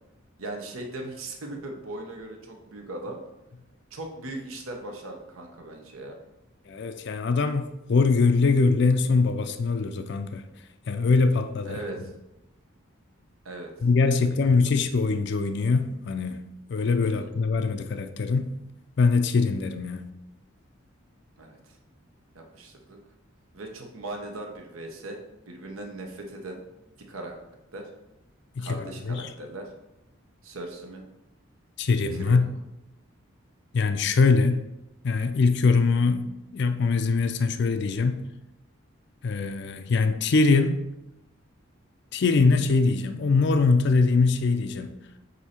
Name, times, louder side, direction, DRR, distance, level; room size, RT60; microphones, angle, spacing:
voice 1, 0.4-3.2 3.9-6.2 11.6-12.1 13.4-13.7 14.1-14.2 17.0-17.3 21.4-21.8 22.3-23.0 23.5-25.2 25.5-26.6 27.1-27.4 27.7-27.8 28.6-29.7 30.4-31.0 32.1-32.4, right 2 dB, 85° right, 1.0 m, -38 dB
voice 2, 6.7-10.4 10.9-11.8 13.8-16.4 16.7-18.5 19.0-20.0 28.6-29.3 31.8-32.5 33.7-34.6 35.0-36.2 36.5-38.3 39.2-40.8 42.1-45.0, left 4 dB, 55° left, 0.4 m, -23 dB
8.1 x 2.8 x 4.3 m
head